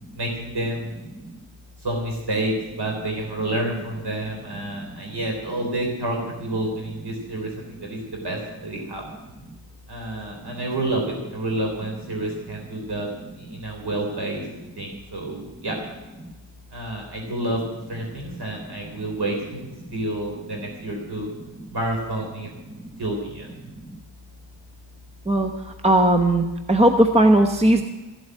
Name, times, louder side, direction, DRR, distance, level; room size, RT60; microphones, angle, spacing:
voice 1, 0.1-0.9 1.8-9.0 9.9-13.1 13.4-14.4 14.8-15.8 16.7-17.6 17.9-19.6 19.9-21.3 21.7-22.5 23.0-23.5, right 1 dB, 50° right, 0 dB, 3.7 m, -29 dB
voice 2, 25.3-27.8, right 1 dB, 15° right, 5 dB, 1.0 m, -18 dB
15.5 x 7.9 x 10.0 m, 1.1 s
wide cardioid pair, 135°, 49 cm